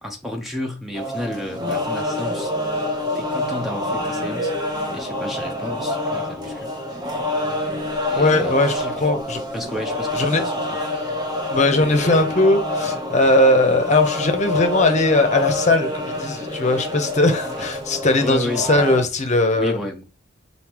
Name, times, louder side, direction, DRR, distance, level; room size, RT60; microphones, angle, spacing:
voice 1, 0.0-2.5 3.1-4.6 4.9-6.7 8.1-9.1 9.5-10.8 17.6-17.7 18.2-18.6 19.5-20.0, left 1 dB, ahead, 0.6 m, -31 dB
sound 1, 0.9-19.0, left 1 dB, 20° right, 0.9 m, -27 dB
voice 2, 8.1-9.4 10.2-10.4 11.5-19.8, left 2 dB, 35° left, 0.8 m, -19 dB
4.0 x 3.8 x 3.0 m
head